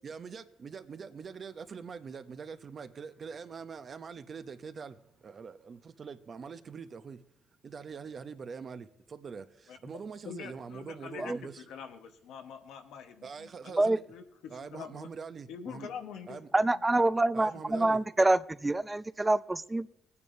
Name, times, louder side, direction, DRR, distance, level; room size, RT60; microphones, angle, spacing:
voice 1, 0.0-7.3 7.6-11.6 13.2-14.0 14.5-15.9 16.3-16.5 17.3-18.0, right 5 dB, 45° right, 0.7 m, -44 dB
voice 2, 10.2-15.1 15.5-16.4 16.7-16.8 17.5-17.9, left 7 dB, 90° left, 1.2 m, -45 dB
voice 3, 16.5-19.9, right 2 dB, 15° right, 0.4 m, -26 dB
19.5 x 9.6 x 2.7 m
cardioid pair, 90°, 0 cm